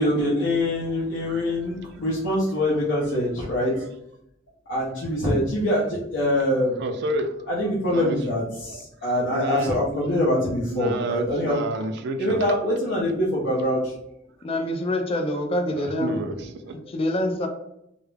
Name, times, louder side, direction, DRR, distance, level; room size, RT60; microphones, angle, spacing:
voice 1, 0.0-3.9 4.7-6.8 7.5-11.6 12.2-13.9, left 1 dB, 80° left, -6 dB, 0.6 m, -24 dB
voice 2, 6.8-7.4 7.9-8.2 8.7-8.8 9.3-9.8 10.7-12.4 15.8-16.8, right 2 dB, 60° right, 8 dB, 0.3 m, -30 dB
voice 3, 14.4-16.3 16.8-17.5, left 1 dB, 30° left, 4 dB, 0.4 m, -26 dB
2.3 x 2.0 x 3.1 m, 0.77 s
head